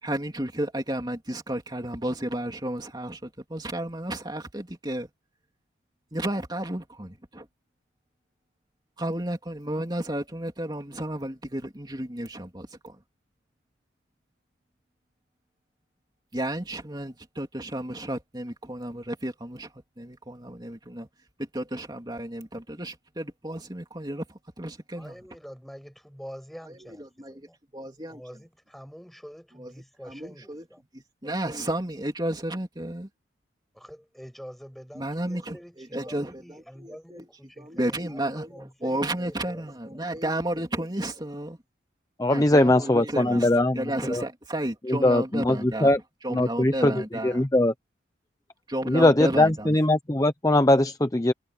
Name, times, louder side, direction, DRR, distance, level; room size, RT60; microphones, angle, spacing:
voice 1, 0.0-5.1 6.1-7.5 9.0-13.0 16.3-21.1 21.4-25.2 26.7-27.5 27.7-28.2 29.6-29.7 30.0-30.6 30.9-33.1 34.9-37.3 37.6-41.6 42.3-45.9 46.2-47.4 48.7-49.8, right 1 dB, 20° right, 3.3 m, -32 dB
voice 2, 25.0-27.6 28.1-30.8 33.7-38.2 38.5-40.2, equal, ahead, 6.8 m, -46 dB
voice 3, 42.2-44.2 44.9-46.0 46.3-47.7 48.9-51.3, left 1 dB, 15° left, 0.7 m, -21 dB
head